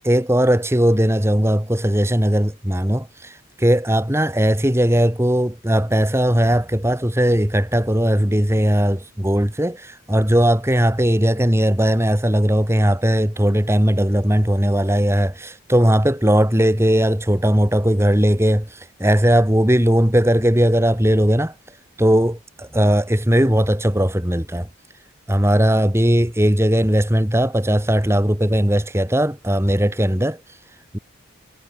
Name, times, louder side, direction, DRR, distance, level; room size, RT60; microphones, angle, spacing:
voice 1, 0.0-21.5 22.0-24.7 25.3-30.4 30.9-31.0, equal, 10° right, 2.1 m, -18 dB
head